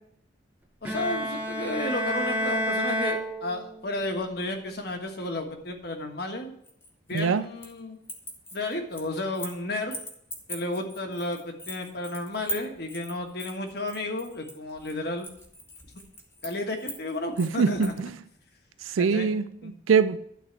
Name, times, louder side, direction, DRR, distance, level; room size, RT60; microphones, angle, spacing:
voice 1, 0.8-6.5 7.1-8.0 8.5-10.0 10.5-15.3 16.4-17.9 19.0-19.3 19.6-19.7, left 2 dB, 55° left, 4 dB, 1.5 m, -32 dB
Bowed string instrument, 0.8-4.0, equal, 10° right, 0.9 m, -30 dB
sound 1, 6.6-7.8 8.0-9.6 9.9-18.0, equal, 10° left, 1.2 m, -40 dB
voice 2, 17.4-18.1 18.8-20.2, right 6 dB, 90° right, 12 dB, 0.4 m, -24 dB
12.0 x 4.0 x 7.4 m, 0.69 s
head